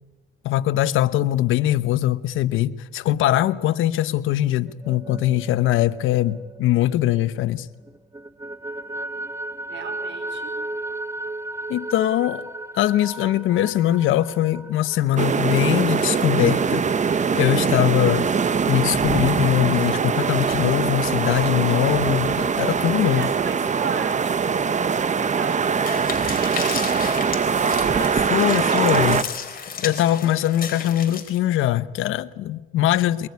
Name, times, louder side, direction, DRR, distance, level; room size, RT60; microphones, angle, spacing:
voice 1, 0.4-7.7 11.7-12.5 12.7-16.9 17.3-18.3 18.7-23.3 28.3-29.2 29.8-33.3, left 13 dB, 90° left, 1.0 m, -21 dB
sound 1, 4.7-7.5 7.9-17.3, right 2 dB, 15° right, 1.1 m, -35 dB
voice 2, 9.7-10.6 22.9-24.7 25.1-27.2 27.4-29.4, right 7 dB, 65° right, 5.0 m, -36 dB
sound 2, 15.2-29.2, right 6 dB, 35° right, 1.1 m, -22 dB
sound 3, 25.9-31.4, left 6 dB, 45° left, 4.1 m, -33 dB
23.5 x 22.5 x 9.6 m
cardioid pair, 90°, 20 cm